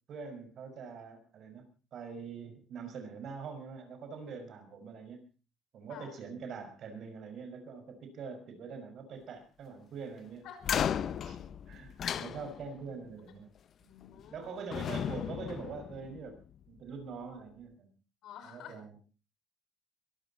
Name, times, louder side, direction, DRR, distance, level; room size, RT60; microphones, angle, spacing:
voice 1, 0.1-5.3 5.7-10.5 11.0-11.4 11.7-13.5 13.8-13.9 14.3-16.4 16.7-17.9 18.4-19.0, right 5 dB, 55° right, 7 dB, 5.7 m, -44 dB
voice 2, 10.4-10.8 13.9-14.6 18.2-18.8, left 9 dB, 70° left, 7 dB, 5.6 m, -49 dB
sound 1, 10.6-12.9 14.0-14.4 14.7-16.5, left 9 dB, 50° left, 0.9 m, -35 dB
22.5 x 13.5 x 4.2 m, 0.35 s
cardioid pair, 105°, 0 cm